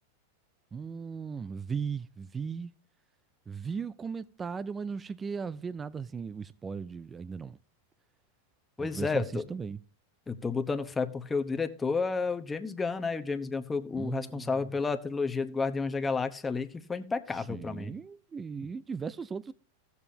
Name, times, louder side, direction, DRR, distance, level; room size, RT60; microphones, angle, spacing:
voice 1, 0.7-2.7 3.5-7.6 8.8-9.8 14.0-14.5 17.5-19.5, right 5 dB, 20° right, 0.4 m, -37 dB
voice 2, 8.8-9.4 10.3-17.9, left 4 dB, 15° left, 1.0 m, -31 dB
16.5 x 7.0 x 2.8 m
hypercardioid pair, 100°, 0 cm